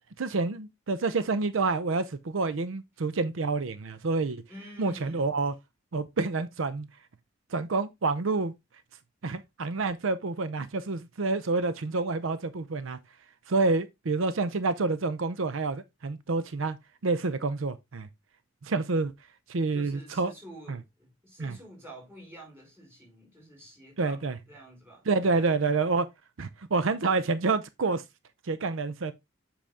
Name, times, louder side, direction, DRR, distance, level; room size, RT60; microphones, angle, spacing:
voice 1, 0.2-4.4 4.8-5.5 5.9-6.9 7.5-8.5 9.2-13.0 13.5-16.8 17.0-18.1 18.6-19.1 19.5-20.3 20.7-20.8 21.4-21.6 24.0-24.3 25.1-26.1 26.4-28.0 28.4-29.1, right 3 dB, 80° right, 0.6 m, -28 dB
voice 2, 4.5-5.3 19.7-25.5, equal, 10° right, 4.9 m, -48 dB
7.6 x 5.1 x 3.5 m
head